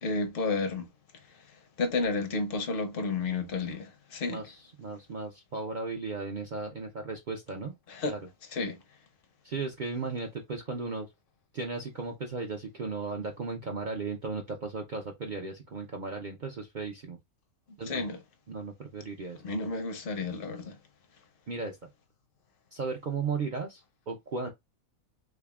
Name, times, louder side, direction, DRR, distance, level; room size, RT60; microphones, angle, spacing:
voice 1, 0.0-0.9 1.8-4.4 7.9-8.1 8.5-8.8 17.9-18.2 19.4-20.8, left 3 dB, 50° left, 0.7 m, -31 dB
voice 2, 4.3-7.7 8.0-8.3 9.4-11.1 11.5-17.2 17.8-18.0 18.5-19.4 21.5-21.8 22.7-24.5, right 4 dB, 55° right, 0.5 m, -36 dB
3.6 x 3.4 x 2.3 m
omnidirectional pair, 1.5 m